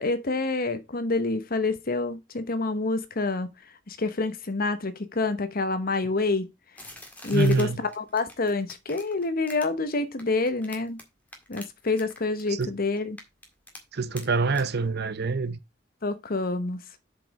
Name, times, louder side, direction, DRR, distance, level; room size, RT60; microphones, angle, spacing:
voice 1, 0.0-3.5 3.9-6.5 7.2-11.0 11.5-13.2 16.0-16.8, left 3 dB, 50° left, 1.0 m, -27 dB
sound 1, 6.8-11.0 11.3-12.7 13.0-13.8 14.2-14.3 14.6-14.7, left 1 dB, 10° left, 1.9 m, -44 dB
voice 2, 7.3-7.8 12.5-12.7 13.9-15.6, right 4 dB, 55° right, 0.7 m, -25 dB
7.5 x 5.2 x 4.8 m
head